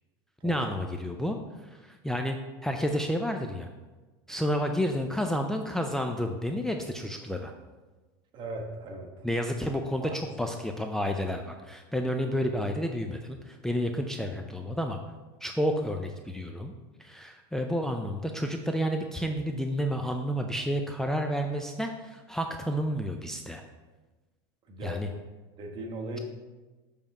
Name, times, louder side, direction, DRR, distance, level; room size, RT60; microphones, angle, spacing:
voice 1, 0.4-3.7 4.3-7.5 9.2-15.0 15.4-16.7 17.0-23.6 24.8-25.1, equal, 5° left, 3 dB, 0.4 m, -30 dB
voice 2, 8.3-9.1 10.0-10.2 24.7-25.0 25.6-26.2, right 2 dB, 40° right, 2 dB, 1.2 m, -38 dB
7.0 x 3.5 x 5.5 m, 1.2 s
supercardioid pair, 110°, 12 cm